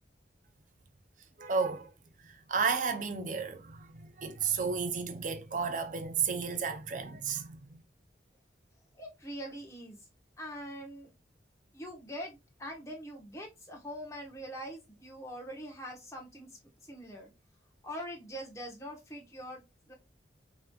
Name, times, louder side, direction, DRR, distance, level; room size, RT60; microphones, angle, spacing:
voice 1, 1.4-1.9 2.2-7.8, right 5 dB, 45° right, 0.5 m, -33 dB
voice 2, 9.0-10.0 10.4-11.1 11.7-16.6 16.9-17.3 17.8-19.6 19.9-20.0, equal, 15° left, 1.1 m, -43 dB
4.9 x 3.1 x 2.3 m
head